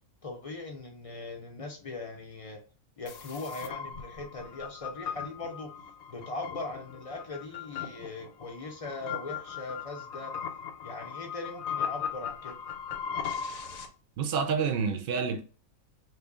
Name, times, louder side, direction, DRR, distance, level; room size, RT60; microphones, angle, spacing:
voice 1, 0.2-2.6 3.0-5.7 6.1-10.3 10.8-12.6, left 3 dB, 45° left, 0.4 m, -40 dB
sound 1, 3.1-13.9, left 7 dB, 85° left, 1.0 m, -38 dB
voice 2, 14.2-15.4, right 6 dB, 60° right, 0.6 m, -28 dB
3.0 x 2.6 x 3.6 m
omnidirectional pair, 1.4 m